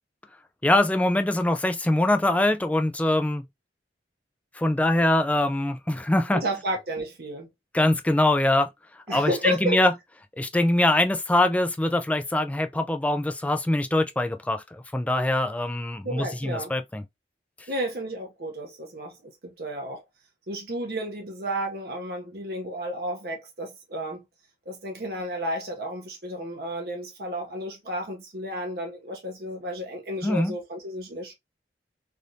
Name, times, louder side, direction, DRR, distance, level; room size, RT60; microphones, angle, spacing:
voice 1, 0.6-3.4 4.6-6.4 7.7-8.7 9.1-9.9 10.4-17.0 30.2-30.5, left 1 dB, 10° left, 0.3 m, -23 dB
voice 2, 6.3-7.5 9.1-9.8 16.0-16.7 17.7-20.0 20.5-24.2 24.7-31.3, equal, 60° right, 0.8 m, -32 dB
3.3 x 2.5 x 2.7 m
head